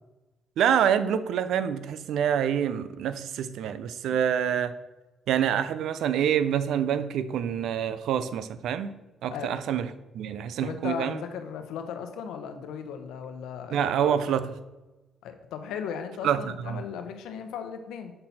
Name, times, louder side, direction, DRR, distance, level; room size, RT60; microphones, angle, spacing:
voice 1, 0.6-4.7 5.3-8.9 9.2-9.9 10.1-11.2 13.7-14.5 16.2-16.8, right 9 dB, 80° right, 13 dB, 0.5 m, -26 dB
voice 2, 10.6-13.9 14.3-14.4 15.2-18.1, left 7 dB, 90° left, 7 dB, 0.8 m, -36 dB
6.7 x 5.8 x 4.2 m, 1.1 s
cardioid pair, 90°, 0 cm